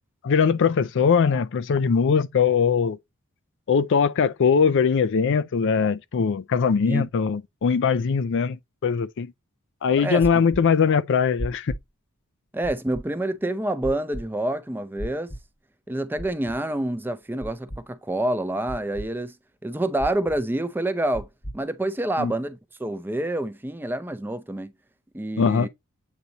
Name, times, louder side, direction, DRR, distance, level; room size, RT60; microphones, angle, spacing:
voice 1, 0.2-3.0 3.7-9.3 9.8-11.7 22.2-22.3 25.4-25.7, left 6 dB, 60° left, 0.4 m, -21 dB
voice 2, 10.0-10.5 12.5-15.3 15.9-19.3 19.6-21.3 21.5-24.7 25.1-25.7, right 1 dB, 10° right, 0.5 m, -27 dB
sound 1, 10.2-10.6 11.4-11.8 12.6-13.0 13.8-14.2 15.0-15.4 16.2-16.6 17.4-17.8 18.7-19.1 20.0-20.4 21.1-21.6, equal, 20° left, 1.0 m, -34 dB
8.2 x 3.0 x 3.9 m
head